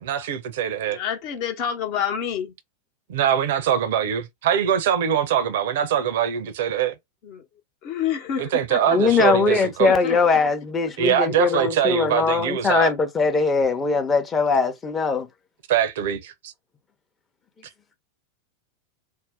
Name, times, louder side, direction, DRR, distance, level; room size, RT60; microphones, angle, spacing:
voice 1, 0.0-1.0 3.1-6.9 8.4-9.9 11.0-12.9 15.7-16.5, right 9 dB, 55° right, 0.6 m, -23 dB
voice 2, 0.9-2.5 7.2-7.4 7.8-9.0 9.3-10.2 11.4-11.6, left 8 dB, 45° left, 1.0 m, -28 dB
voice 3, 8.9-15.3, left 4 dB, 20° left, 0.8 m, -21 dB
2.7 x 2.1 x 3.5 m
figure-of-eight pair, 90°, 0 cm